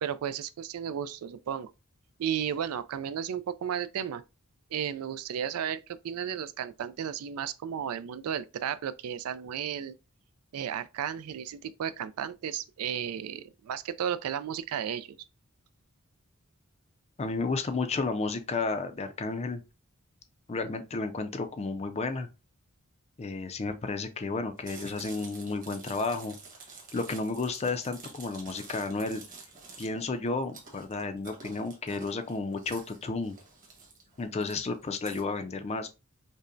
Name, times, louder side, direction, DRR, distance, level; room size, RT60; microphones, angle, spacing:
voice 1, 0.0-1.7 2.2-4.2 4.7-9.9 10.5-15.2, right 8 dB, 85° right, 0.3 m, -34 dB
voice 2, 17.2-19.6 20.5-22.3 23.2-26.3 26.9-29.3 29.8-33.4 34.2-35.9, left 3 dB, 30° left, 0.4 m, -32 dB
Chewing mastication, 24.6-35.2, right 4 dB, 40° right, 1.2 m, -49 dB
5.3 x 2.1 x 2.5 m
head